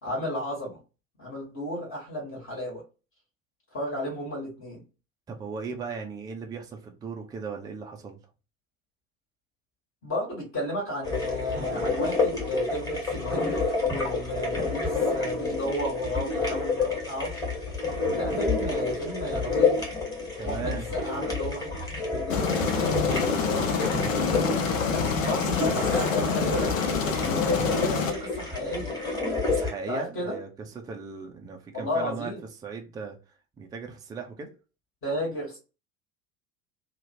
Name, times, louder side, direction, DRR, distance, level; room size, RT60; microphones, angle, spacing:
voice 1, 0.0-0.8 1.2-2.8 3.7-4.8 10.0-17.3 18.1-19.8 20.4-21.7 22.1-22.4 23.0-23.9 24.8-29.0 29.9-30.4 31.7-32.4 35.0-35.6, left 1 dB, 30° left, 1.3 m, -33 dB
voice 2, 5.3-8.2 20.4-20.9 29.4-32.3 32.6-33.2 33.6-34.6, right 5 dB, 10° right, 0.4 m, -37 dB
sound 1, 11.0-29.7, left 3 dB, 10° left, 1.3 m, -29 dB
Aircraft, 22.3-28.1, left 5 dB, 65° left, 0.6 m, -27 dB
2.7 x 2.1 x 2.7 m
figure-of-eight pair, 70°, 41 cm